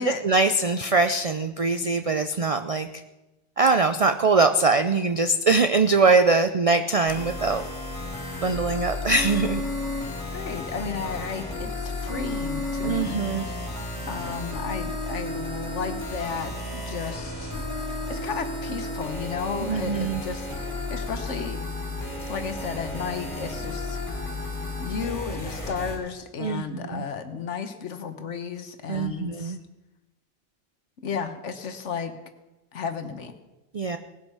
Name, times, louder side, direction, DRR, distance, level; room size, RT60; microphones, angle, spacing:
voice 1, 0.0-3.0 3.6-7.6 8.4-9.6 12.8-13.5 19.7-20.2 26.4-27.0 28.9-29.6 33.7-34.0, right 3 dB, 45° right, 8 dB, 0.5 m, -22 dB
sound 1, 7.1-26.0, left 2 dB, 30° left, 4.1 m, -33 dB
voice 2, 10.3-13.2 13.5-13.6 14.1-17.5 17.9-21.6 22.3-24.0 24.8-29.6 31.0-32.2 32.7-33.3, left 6 dB, 80° left, 8 dB, 1.4 m, -33 dB
18.5 x 8.1 x 5.6 m, 1.1 s
omnidirectional pair, 1.2 m